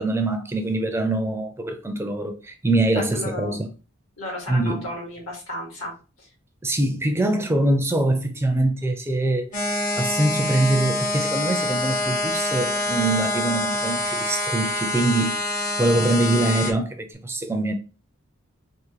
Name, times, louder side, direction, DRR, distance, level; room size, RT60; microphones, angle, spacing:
voice 1, 0.0-3.7 4.5-4.9 6.6-9.5 10.0-15.4 15.8-17.7, right 2 dB, 10° right, 0.4 m, -23 dB
voice 2, 3.1-3.6 4.2-5.9 6.2-6.3, left 1 dB, 85° left, 1.9 m, -33 dB
sound 1, 9.5-16.7, left 2 dB, 40° left, 0.7 m, -26 dB
3.6 x 2.5 x 3.1 m
head